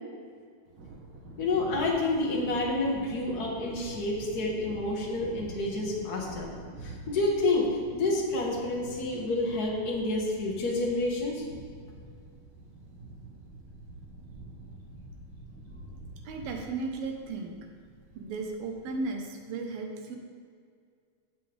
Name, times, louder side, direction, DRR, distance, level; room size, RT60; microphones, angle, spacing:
Thunder, 0.7-19.1, right 2 dB, 60° right, 1.2 m, -46 dB
voice 1, 1.4-6.5 6.8-11.4, left 2 dB, 75° left, -3 dB, 0.8 m, -29 dB
voice 2, 16.2-17.6 18.1-20.2, right 3 dB, 75° right, 2 dB, 2.9 m, -35 dB
15.5 x 7.5 x 3.6 m, 2.1 s
omnidirectional pair, 4.3 m